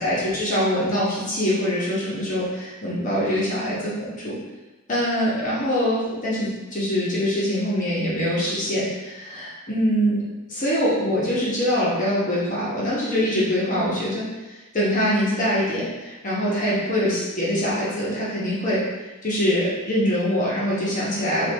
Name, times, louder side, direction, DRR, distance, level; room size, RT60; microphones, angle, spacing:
voice 1, 0.0-4.4 4.9-10.2 10.5-18.8 19.2-21.5, equal, 40° left, -8 dB, 1.1 m, -24 dB
4.7 x 2.6 x 3.4 m, 1.1 s
head